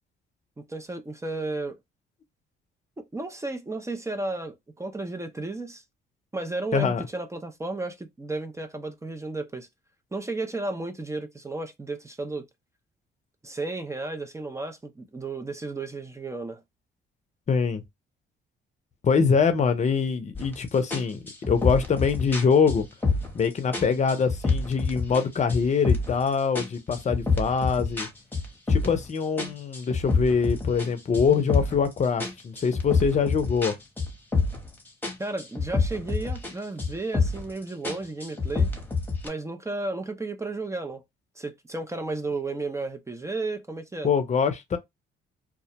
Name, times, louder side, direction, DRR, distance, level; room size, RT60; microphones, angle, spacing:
voice 1, 0.6-1.8 3.0-5.8 6.3-9.7 10.1-12.5 13.4-16.6 35.2-38.7 39.2-41.0 41.4-44.1, right 2 dB, 15° right, 0.5 m, -33 dB
voice 2, 6.7-7.0 17.5-17.8 19.0-22.9 23.3-28.1 28.7-33.8 44.0-44.8, left 6 dB, 35° left, 0.6 m, -24 dB
sound 1, 20.3-20.6 20.9-23.4 23.7-25.2 25.5-26.2 26.5-29.1 29.4-31.9 32.2-34.7 35.0-36.5 36.8-37.5 37.8-39.3, left 4 dB, 10° left, 0.9 m, -27 dB
2.3 x 2.1 x 2.8 m
cardioid pair, 90°, 20 cm